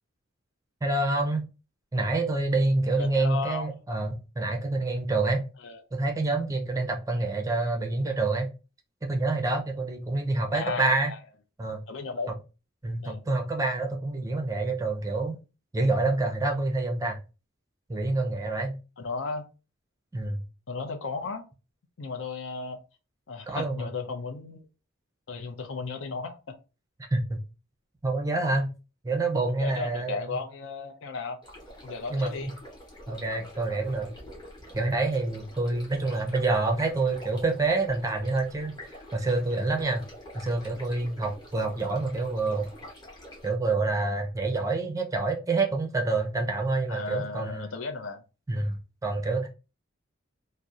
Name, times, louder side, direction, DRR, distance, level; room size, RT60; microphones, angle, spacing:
voice 1, 0.8-1.4 1.9-5.5 5.9-8.5 9.1-11.1 11.6-11.8 12.8-15.4 15.7-17.2 17.9-18.8 20.1-20.4 23.5-23.9 27.0-27.4 28.0-28.7 29.0-30.4 32.1-32.5 33.1-34.1 34.7-40.0 40.3-42.7 43.4-47.7 48.5-49.5, right 2 dB, 15° right, 0.4 m, -27 dB
voice 2, 3.0-3.7 5.6-5.8 10.5-11.2 11.9-12.3 13.0-13.2 19.0-19.4 20.7-21.4 22.0-22.8 23.3-24.6 25.3-26.4 29.6-31.4 31.8-32.5 46.9-48.2, left 4 dB, 70° left, 0.5 m, -35 dB
sound 1, 31.4-43.5, equal, 20° left, 0.8 m, -47 dB
2.7 x 2.0 x 2.3 m
head